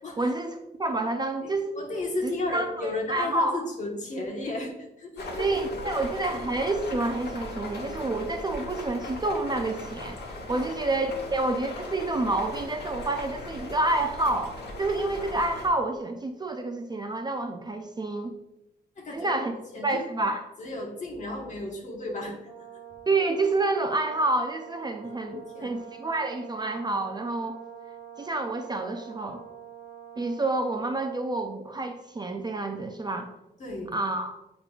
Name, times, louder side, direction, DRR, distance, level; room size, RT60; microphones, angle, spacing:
voice 1, 0.2-1.8 2.2-3.6 5.4-18.3 19.1-19.5 19.8-20.4 23.1-27.6 28.2-29.4 30.2-33.3 33.9-34.4, right 2 dB, 25° right, 5 dB, 0.4 m, -28 dB
voice 2, 1.4-5.5 5.8-5.9 10.5-10.7 11.1-11.2 19.0-19.3 19.7-20.1 20.6-22.4 25.2-25.8 33.6-33.9, left 2 dB, 45° left, -1 dB, 1.3 m, -34 dB
sound 1, 5.2-15.7, left 2 dB, 70° left, 1.2 m, -38 dB
Brass instrument, 22.4-31.3, right 9 dB, 5° right, 1.1 m, -45 dB
8.2 x 5.2 x 2.4 m, 0.93 s
wide cardioid pair, 170°, 18 cm